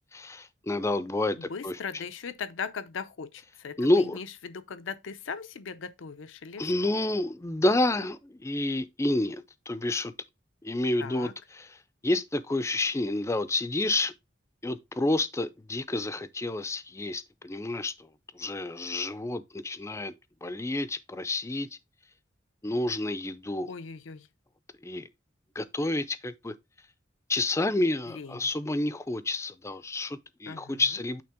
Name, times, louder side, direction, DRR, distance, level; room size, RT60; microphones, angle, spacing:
voice 1, 0.1-1.8 3.8-4.2 6.6-10.1 10.6-11.3 11.6-11.7 12.0-14.1 14.6-18.1 18.3-20.1 20.4-21.7 22.6-23.7 24.8-25.0 25.6-26.5 27.3-31.2, left 2 dB, 15° left, 0.4 m, -29 dB
voice 2, 1.4-6.9 11.0-11.4 23.7-24.3 28.1-28.5 30.5-31.0, left 5 dB, 85° left, 0.6 m, -39 dB
8.7 x 3.3 x 3.5 m
head